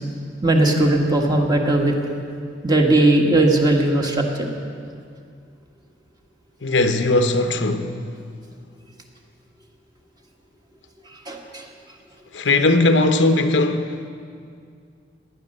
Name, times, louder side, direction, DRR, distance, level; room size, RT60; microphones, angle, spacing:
voice 1, 0.4-1.9 2.6-4.5 11.3-11.6, right 2 dB, 25° right, 1.5 m, -18 dB
voice 2, 6.6-7.9 12.3-14.1, left 2 dB, 85° left, 0.9 m, -19 dB
16.5 x 10.0 x 6.6 m
head